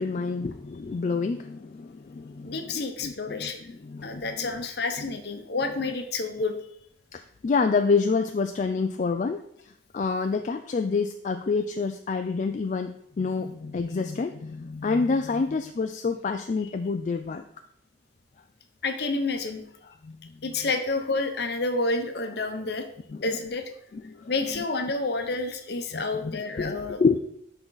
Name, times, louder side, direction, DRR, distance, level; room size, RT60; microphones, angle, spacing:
voice 1, 0.0-4.5 5.0-5.1 7.1-9.4 9.9-17.4 20.0-20.3 23.1-23.2 23.9-24.3 25.9-27.2, left 4 dB, 40° left, 6 dB, 0.3 m, -28 dB
voice 2, 2.4-3.6 4.0-6.6 18.8-19.6 20.4-22.8 23.2-23.7 24.3-27.0, left 3 dB, 55° left, 6 dB, 0.9 m, -29 dB
10.5 x 3.9 x 4.0 m, 0.72 s
head